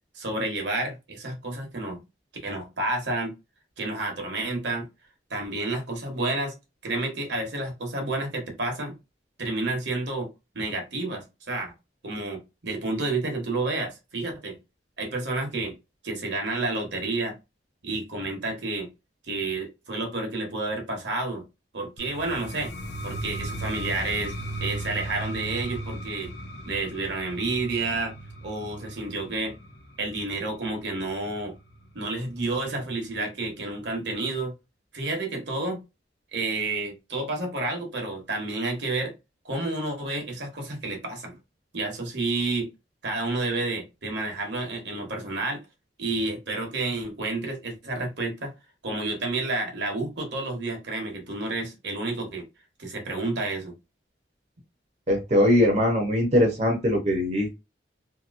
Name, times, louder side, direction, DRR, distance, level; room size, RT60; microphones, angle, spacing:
voice 1, 0.1-2.0 2.4-3.3 3.8-4.9 5.3-6.6 6.8-9.0 9.4-10.3 10.5-11.7 12.0-14.6 15.0-15.7 16.0-17.4 17.8-18.9 19.3-21.4 21.7-22.7 23.0-26.3 26.7-28.1 28.4-29.5 30.0-31.6 31.9-34.5 34.9-35.8 36.3-39.1 39.4-41.4 41.7-42.7 43.0-45.6 46.0-48.5 48.8-52.5 52.8-53.7, right 2 dB, 70° right, 1.1 m, -30 dB
sound 1, 22.0-31.8, right 1 dB, 60° left, 0.7 m, -36 dB
voice 2, 55.1-57.5, left 1 dB, 35° right, 0.7 m, -21 dB
2.9 x 2.8 x 2.5 m
head